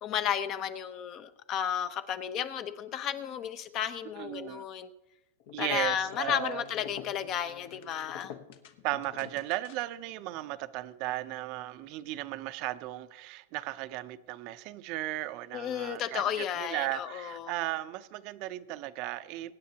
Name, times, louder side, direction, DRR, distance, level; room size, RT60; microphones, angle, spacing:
voice 1, 0.0-4.9 5.6-8.3 15.5-17.5, left 9 dB, 35° left, 0.8 m, -33 dB
voice 2, 4.2-4.6 5.5-6.6 8.8-19.5, right 16 dB, 45° right, 0.7 m, -36 dB
sound 1, 5.4-10.0, left 9 dB, 60° left, 1.2 m, -47 dB
24.0 x 9.4 x 2.9 m
supercardioid pair, 135°, 0 cm